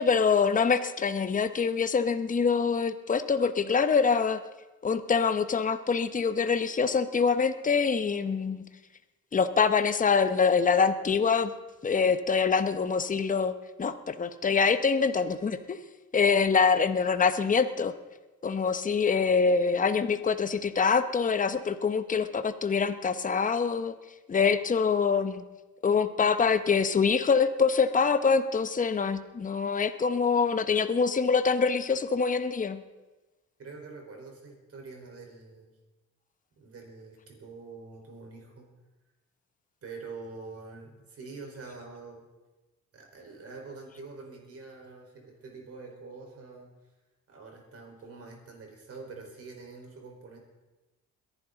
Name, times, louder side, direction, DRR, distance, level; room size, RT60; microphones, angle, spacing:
voice 1, 0.0-4.4 4.8-8.6 9.3-11.5 11.8-15.8 16.1-17.9 18.4-24.0 24.3-25.4 25.8-32.8, left 5 dB, 25° left, 10 dB, 0.9 m, -25 dB
voice 2, 33.6-35.7 36.6-38.7 39.8-42.2 42.9-46.7 47.3-50.4, right 4 dB, 50° right, 1 dB, 4.5 m, -45 dB
22.0 x 11.0 x 3.9 m, 1.1 s
cardioid pair, 90°, 30 cm